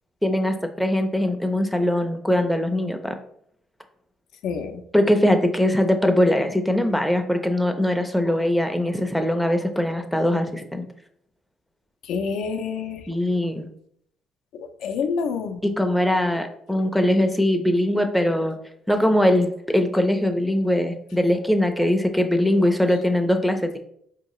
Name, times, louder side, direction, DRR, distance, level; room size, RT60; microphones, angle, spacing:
voice 1, 0.2-3.2 4.9-10.8 13.1-13.7 15.6-18.6 18.9-23.8, left 1 dB, ahead, 5 dB, 0.4 m, -21 dB
voice 2, 4.4-4.8 12.0-13.0 14.5-15.7, left 5 dB, 80° left, 5 dB, 0.4 m, -28 dB
4.5 x 2.7 x 3.0 m, 0.68 s
cardioid pair, 105°, 0 cm